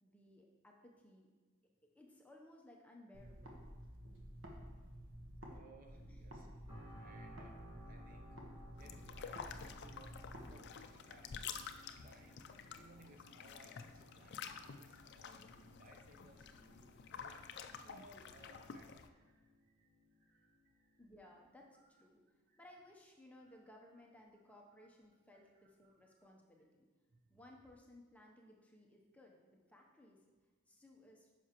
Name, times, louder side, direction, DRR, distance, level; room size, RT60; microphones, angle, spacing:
voice 1, 0.0-1.3 1.8-3.6 5.9-6.2 21.0-26.9 27.3-30.2 30.7-31.3, left 1 dB, 5° left, 0 dB, 0.6 m, -61 dB
sound 1, 3.1-5.6 5.9-10.5, equal, 60° right, 1.1 m, -52 dB
voice 2, 5.5-6.5 7.0-7.6 7.8-8.4 8.8-11.7 12.0-17.6 17.8-21.0 22.5-22.6 24.5-24.6 25.3-26.0 27.1-27.4, right 2 dB, 40° right, 3 dB, 0.7 m, -63 dB
sound 2, 6.7-21.7 22.2-22.4, equal, 20° right, 1.7 m, -62 dB
sound 3, 8.8-19.1, left 6 dB, 55° left, 0.4 m, -50 dB
9.6 x 5.9 x 2.9 m, 1.3 s
head